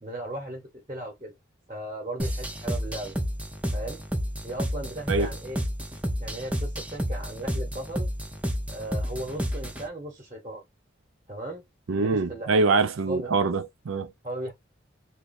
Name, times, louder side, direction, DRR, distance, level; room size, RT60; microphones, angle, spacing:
voice 1, 0.0-1.3 1.7-3.1 3.7-4.0 4.4-5.6 6.2-8.1 8.7-10.6 11.3-11.6 12.0-12.6 13.0-13.3 14.2-14.5, right 1 dB, 25° right, 1.0 m, -36 dB
sound 1, 2.2-9.9, equal, 5° right, 0.5 m, -31 dB
voice 2, 11.9-14.1, right 3 dB, 90° right, 0.5 m, -24 dB
3.0 x 2.2 x 4.0 m
head